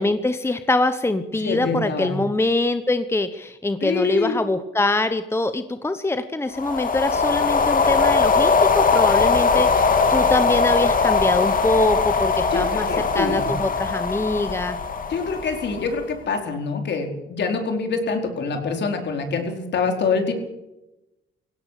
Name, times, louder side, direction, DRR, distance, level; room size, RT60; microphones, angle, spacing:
voice 1, 0.0-12.9 13.1-14.8, left 2 dB, 10° left, 10 dB, 1.2 m, -24 dB
voice 2, 1.4-2.2 3.8-4.4 12.5-13.5 15.1-20.3, left 4 dB, 60° left, 4 dB, 4.6 m, -25 dB
sound 1, 6.5-16.0, left 4 dB, 45° left, 2.5 m, -20 dB
18.0 x 17.0 x 8.4 m, 0.95 s
cardioid pair, 90°, 20 cm